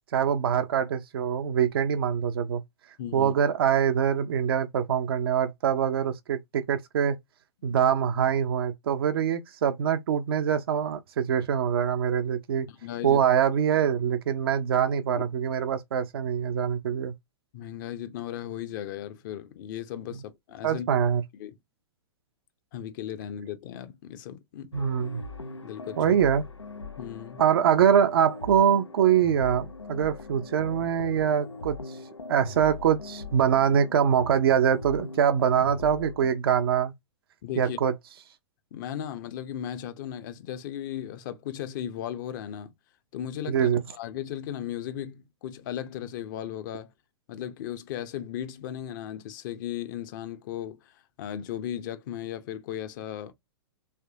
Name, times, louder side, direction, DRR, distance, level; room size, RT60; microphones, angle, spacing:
voice 1, 0.1-2.6 3.1-7.2 7.6-12.7 13.0-17.1 20.6-21.2 24.7-25.2 26.0-26.4 27.4-31.8 32.3-36.9 37.6-37.9 43.5-43.8, right 8 dB, 55° right, 0.6 m, -24 dB
voice 2, 3.0-3.3 7.6-7.8 12.7-13.2 15.1-15.2 17.5-20.9 21.3-21.5 22.7-24.7 25.6-26.2 27.0-27.4 37.4-37.8 38.7-42.7 43.1-46.9 47.3-53.3, left 10 dB, 45° left, 0.7 m, -36 dB
sound 1, 24.7-36.3, left 2 dB, 90° left, 0.5 m, -41 dB
3.3 x 3.2 x 2.8 m
figure-of-eight pair, 105°, 14 cm